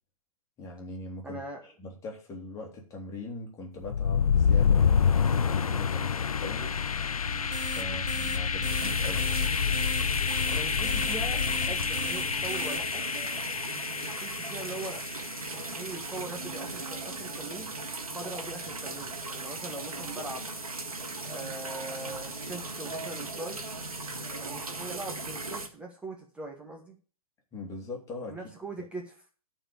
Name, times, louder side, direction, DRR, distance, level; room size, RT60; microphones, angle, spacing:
voice 1, 0.6-1.4 1.8-6.8 7.7-9.5 27.5-28.4, left 2 dB, 15° left, 0 dB, 2.8 m, -41 dB
voice 2, 1.2-1.6 7.8-8.0 10.5-13.1 14.0-15.0 15.5-17.7 18.1-20.5 21.2-23.6 24.4-27.0 28.3-29.2, right 2 dB, 5° right, 0 dB, 1.3 m, -41 dB
sound 1, 3.8-15.7, left 6 dB, 70° left, 0.5 m, -28 dB
sound 2, 7.2-12.8, right 6 dB, 50° right, 1.6 m, -41 dB
sound 3, 8.6-25.7, right 3 dB, 75° right, 1.9 m, -38 dB
12.5 x 4.6 x 7.0 m, 0.37 s
figure-of-eight pair, 120°, 19 cm